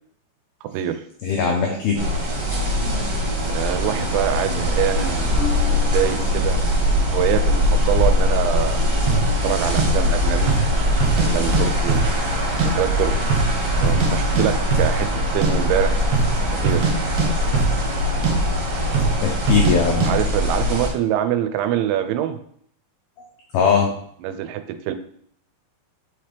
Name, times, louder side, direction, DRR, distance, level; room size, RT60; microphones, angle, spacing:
voice 1, 0.6-1.0 3.5-6.6 6.8-8.8 9.4-10.9 11.1-12.2 12.6-13.1 13.8-16.0 16.5-16.9 20.0-22.4 24.2-24.9, right 10 dB, 85° right, 10 dB, 2.9 m, -25 dB
voice 2, 1.2-2.1 18.6-18.7 19.2-20.1 23.5-24.0, left 6 dB, 85° left, 1 dB, 2.1 m, -20 dB
sound 1, 1.9-20.9, left 1 dB, 50° right, 1.9 m, -21 dB
Marimba xylophone, 5.4-7.4, left 9 dB, 20° left, 1.8 m, -35 dB
sound 2, 9.1-9.3 9.8-9.9 10.4-10.7 11.0-11.6 11.9-12.7 13.0-13.1 13.3-14.1 14.4-14.5 14.7-14.9 15.2-15.5 16.0-16.3 16.6-18.0 18.2-18.4 18.9-19.2 19.5-19.8 20.0-20.1, right 6 dB, 70° right, 2.3 m, -21 dB
5.8 x 5.8 x 3.3 m, 0.65 s
omnidirectional pair, 5.3 m